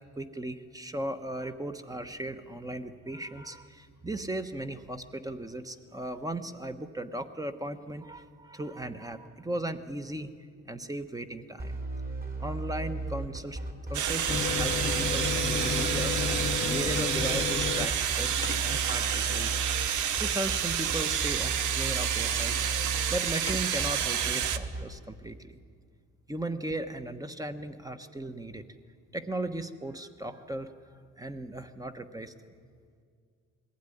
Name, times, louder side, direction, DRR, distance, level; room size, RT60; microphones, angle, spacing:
voice 1, 0.2-10.3 10.6-11.8 12.4-13.6 13.9-16.2 16.6-19.6 20.2-25.6 26.3-28.6 29.1-30.7 31.2-32.3, right 1 dB, 10° right, 8 dB, 1.2 m, -37 dB
sound 1, 11.6-24.8, right 3 dB, 30° right, 3.1 m, -35 dB
sound 2, 13.9-24.6, right 9 dB, 80° right, 0.9 m, -29 dB
sound 3, 14.3-21.9 23.3-23.6, left 6 dB, 40° left, 0.8 m, -35 dB
20.5 x 16.0 x 10.0 m, 2.1 s
cardioid pair, 90°, 30 cm